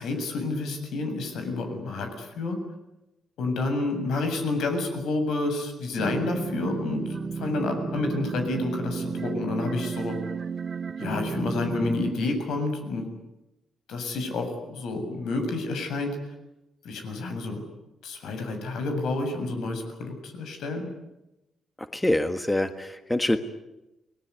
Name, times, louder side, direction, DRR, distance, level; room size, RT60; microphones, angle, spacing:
voice 1, 0.0-2.6 3.4-10.2 11.0-13.1 13.9-16.1 16.8-17.6 18.0-20.9, left 2 dB, 85° left, 5 dB, 7.5 m, -29 dB
sound 1, 6.0-12.1, right 5 dB, 35° right, 1.6 m, -32 dB
voice 2, 21.8-23.4, left 1 dB, 10° left, 9 dB, 1.6 m, -25 dB
29.5 x 20.0 x 9.6 m, 0.94 s
cardioid pair, 150°, 0 cm